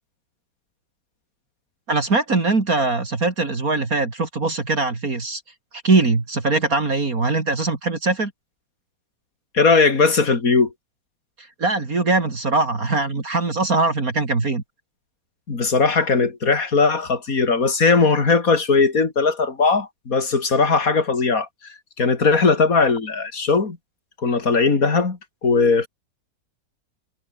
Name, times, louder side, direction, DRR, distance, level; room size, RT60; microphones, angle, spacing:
voice 1, 1.9-5.4 5.8-8.3 11.4-14.6, right 3 dB, 45° right, 3.4 m, -21 dB
voice 2, 9.5-10.7 15.5-21.5 22.0-23.8 24.2-25.9, left 4 dB, 45° left, 3.3 m, -19 dB
omnidirectional pair, 2.1 m